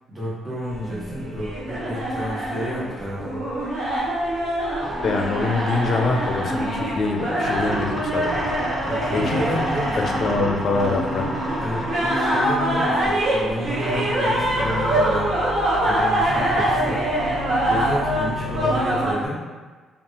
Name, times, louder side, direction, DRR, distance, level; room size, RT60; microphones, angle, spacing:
voice 1, 0.1-3.5 8.8-10.5 11.6-15.4 15.8-17.0 17.4-19.4, equal, 30° right, -9 dB, 1.2 m, -30 dB
sound 1, 0.7-19.1, right 1 dB, 70° right, 0.8 m, -24 dB
sound 2, 4.7-19.3, left 1 dB, 5° left, 1.1 m, -31 dB
voice 2, 5.0-8.5 9.1-9.6 10.0-11.3 18.4-18.7, left 3 dB, 50° left, 2 dB, 0.4 m, -24 dB
2.5 x 2.3 x 2.7 m, 1.4 s
cardioid pair, 90°, 0 cm